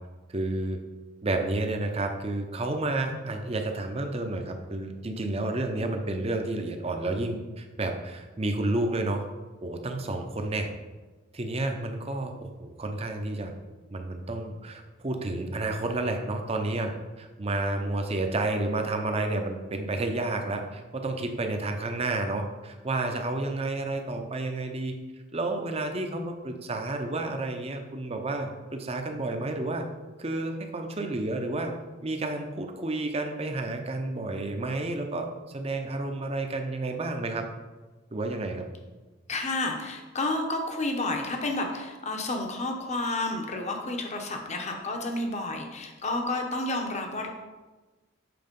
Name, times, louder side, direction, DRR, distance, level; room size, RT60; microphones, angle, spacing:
voice 1, 0.3-0.8 1.2-9.2 9.6-10.7 11.3-12.3 12.6-13.5 13.9-25.0 25.3-29.8 30.2-31.7 32.0-35.3 35.5-37.4 38.1-38.7, right 2 dB, 30° right, 5 dB, 0.7 m, -30 dB
voice 2, 39.3-47.3, left 2 dB, 35° left, 3 dB, 0.9 m, -30 dB
7.8 x 4.1 x 5.4 m, 1.3 s
head